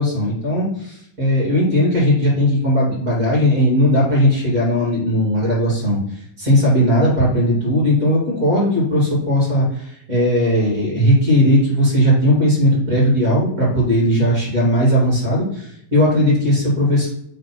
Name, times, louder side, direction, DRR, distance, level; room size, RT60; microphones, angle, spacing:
voice 1, 0.0-17.1, equal, 30° right, -4 dB, 2.1 m, -17 dB
6.2 x 3.5 x 4.3 m, 0.73 s
omnidirectional pair, 4.0 m